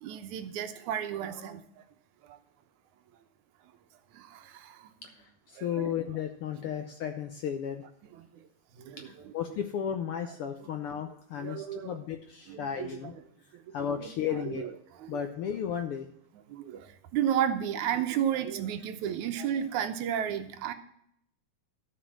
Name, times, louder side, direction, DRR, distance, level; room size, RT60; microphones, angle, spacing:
voice 1, 0.0-1.6 2.3-2.4 4.1-4.9 5.6-5.9 8.3-8.4 8.8-9.1 11.4-11.9 12.5-12.9 13.5-14.1 14.5-14.7 15.0-15.2 16.5-20.7, right 9 dB, 85° right, 9 dB, 2.4 m, -33 dB
voice 2, 5.0-7.9 9.0-13.1 13.7-14.6 15.1-16.1, left 8 dB, 75° left, 6 dB, 1.3 m, -34 dB
13.0 x 5.3 x 7.3 m, 0.71 s
omnidirectional pair, 3.3 m